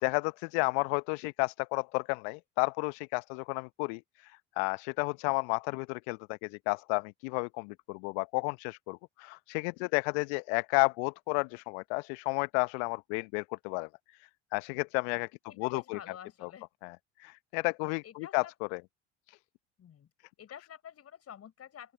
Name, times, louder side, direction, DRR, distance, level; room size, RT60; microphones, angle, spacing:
voice 1, 0.0-15.3 15.6-16.0 16.4-16.5 16.8-18.4 18.7-18.8 19.3-19.4, left 35 dB, 60° left, 0.9 m, -32 dB
voice 2, 15.5-16.7 18.0-18.5 19.8-20.1 20.4-21.9, left 9 dB, 40° left, 6.3 m, -48 dB
open air
figure-of-eight pair, 65°, 36 cm